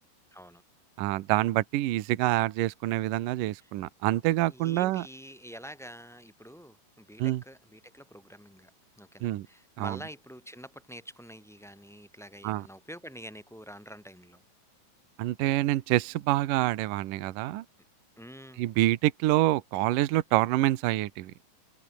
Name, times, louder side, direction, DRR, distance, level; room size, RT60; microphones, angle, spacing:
voice 1, 0.3-0.6 3.6-3.7 4.5-8.7 9.0-14.4 18.2-18.6, equal, ahead, 2.1 m, -47 dB
voice 2, 1.0-5.0 7.2-7.4 9.2-9.5 9.8-10.0 12.4-12.7 15.2-17.6 18.6-21.3, right 16 dB, 70° right, 2.3 m, -26 dB
omnidirectional pair, 4.8 m